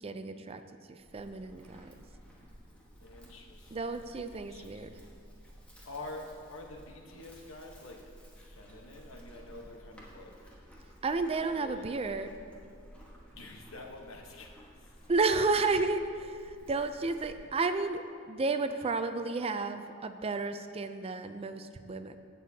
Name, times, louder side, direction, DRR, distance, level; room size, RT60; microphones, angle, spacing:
voice 1, 0.0-0.6 0.9-1.9 3.7-4.9 11.0-12.3 15.1-22.2, right 3 dB, 30° right, 9 dB, 0.4 m, -32 dB
Livestock farm animals working animals, 1.0-17.5, equal, 5° left, 1.4 m, -54 dB
voice 2, 3.0-3.8 4.3-5.1 5.8-10.5 11.5-11.8 13.3-15.1, left 2 dB, 85° left, 2 dB, 1.1 m, -47 dB
17.0 x 6.9 x 2.8 m, 2.3 s
head